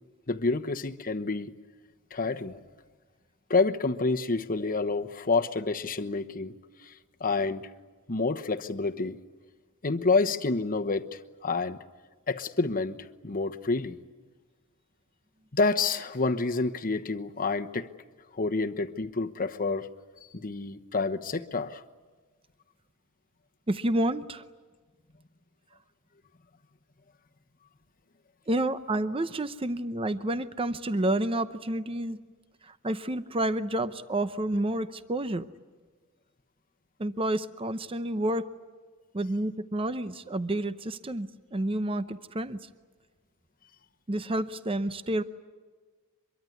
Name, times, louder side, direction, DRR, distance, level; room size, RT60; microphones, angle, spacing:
voice 1, 0.3-1.5 2.1-2.6 3.5-6.6 6.8-6.9 7.2-7.7 8.1-9.2 9.8-11.8 12.3-14.0 15.5-17.9 18.3-19.9 20.3-21.8, left 3 dB, 40° left, 7 dB, 1.1 m, -28 dB
voice 2, 23.7-24.4 28.5-32.2 32.6-35.5 37.0-38.5 39.1-42.7 44.1-45.2, right 1 dB, 25° right, 12 dB, 0.7 m, -29 dB
25.0 x 23.0 x 9.6 m, 1.4 s
head